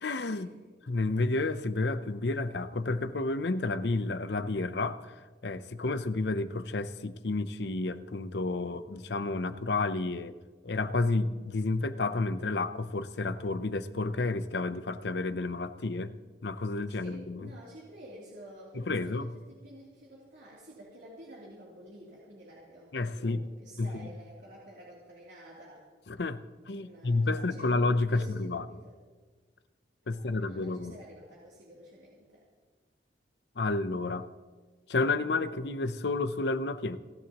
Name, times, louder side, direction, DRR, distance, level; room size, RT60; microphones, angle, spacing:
voice 1, 0.0-0.5 0.9-5.1 5.4-10.3 10.6-16.1 16.4-17.4 18.8-19.3 22.9-23.4 23.8-23.9 26.1-26.4 26.7-28.6 30.1-31.0 33.6-34.3 34.9-37.0, left 3 dB, 75° left, 12 dB, 0.7 m, -30 dB
voice 2, 16.9-25.8 26.7-27.7 28.1-28.9 30.1-32.4, right 1 dB, 85° right, -6 dB, 3.1 m, -50 dB
29.5 x 11.5 x 3.0 m, 1.4 s
head